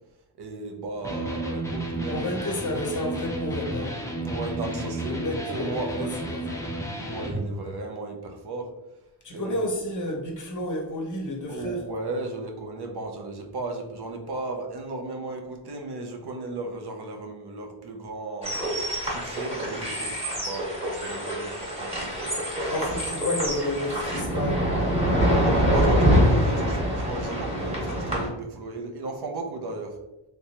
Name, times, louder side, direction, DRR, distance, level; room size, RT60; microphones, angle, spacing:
voice 1, 0.4-2.3 4.2-6.1 7.0-8.7 9.3-9.7 11.5-18.5 19.0-20.1 20.4-22.7 25.1-30.0, right 3 dB, 55° right, 3 dB, 0.6 m, -35 dB
Electric guitar, 1.0-7.4, right 1 dB, 5° left, 0.4 m, -32 dB
voice 2, 2.1-4.0 5.0-6.6 9.2-11.8 22.7-24.7, left 1 dB, 40° left, 0 dB, 0.7 m, -31 dB
sound 1, 18.4-28.3, equal, 15° right, 1.1 m, -25 dB
3.3 x 3.0 x 2.8 m, 0.96 s
wide cardioid pair, 160°, 46 cm